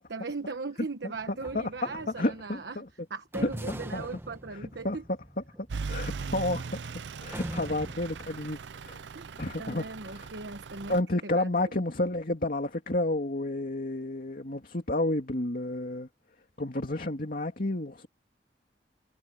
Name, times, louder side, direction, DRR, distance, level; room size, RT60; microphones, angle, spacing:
voice 1, 0.1-2.8 3.1-5.0 9.1-11.0 11.2-11.7, right 3 dB, 70° right, 1.2 m, -39 dB
sound 1, 1.2-2.6 3.3-6.7 7.3-8.3, right 1 dB, 15° right, 1.8 m, -43 dB
voice 2, 2.2-2.9 3.4-3.5 3.9-4.1 4.8-5.0 5.8-6.9 7.2-9.0 9.4-10.3 10.9-16.1 16.6-18.1, left 1 dB, 55° left, 2.5 m, -30 dB
Truck / Idling, 5.7-11.0, right 4 dB, 90° right, 0.5 m, -39 dB
head